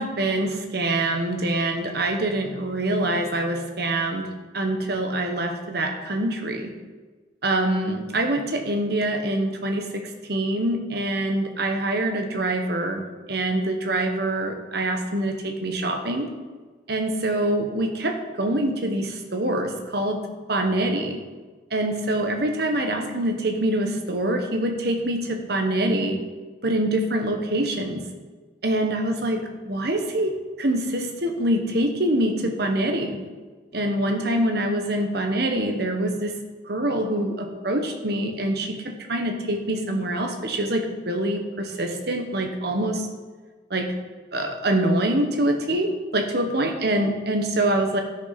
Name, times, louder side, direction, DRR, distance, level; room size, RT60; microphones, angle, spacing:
voice 1, 0.0-4.3 4.5-6.7 7.4-13.0 13.3-16.3 16.9-21.2 21.7-26.2 26.6-28.0 28.6-33.2 33.7-36.4 36.7-43.1 43.7-43.9 44.3-48.0, right 1 dB, 55° right, 4 dB, 1.3 m, -25 dB
13.0 x 6.9 x 5.8 m, 1.4 s
head